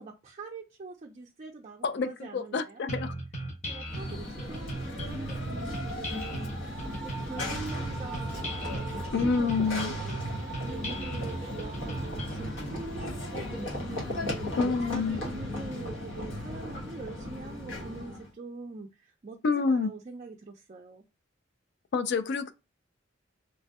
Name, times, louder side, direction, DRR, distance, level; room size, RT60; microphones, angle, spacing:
voice 1, 0.0-2.8 3.6-14.5 14.8-21.1, right 3 dB, 35° right, 0.4 m, -44 dB
voice 2, 1.8-3.1 9.1-9.9 14.6-15.2 19.4-19.9 21.9-22.5, left 4 dB, 60° left, 0.4 m, -27 dB
sound 1, 2.9-12.5, right 1 dB, 35° left, 0.9 m, -37 dB
Run / Train, 3.8-18.3, left 1 dB, 85° left, 1.1 m, -36 dB
3.1 x 2.6 x 2.3 m
head